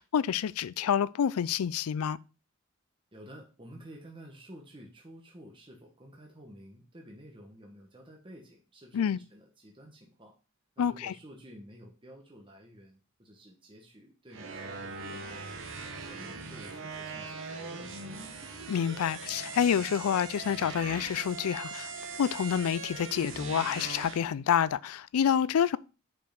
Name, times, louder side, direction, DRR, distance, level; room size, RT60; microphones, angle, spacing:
voice 1, 0.0-2.2 8.9-9.2 10.8-11.1 18.7-21.9 22.2-25.8, left 8 dB, 90° left, 0.4 m, -28 dB
voice 2, 3.1-10.3 10.8-15.5 16.0-18.0, equal, 25° right, 1.2 m, -51 dB
sound 1, 14.3-24.2, right 4 dB, 60° right, 1.0 m, -41 dB
5.2 x 4.8 x 5.9 m
head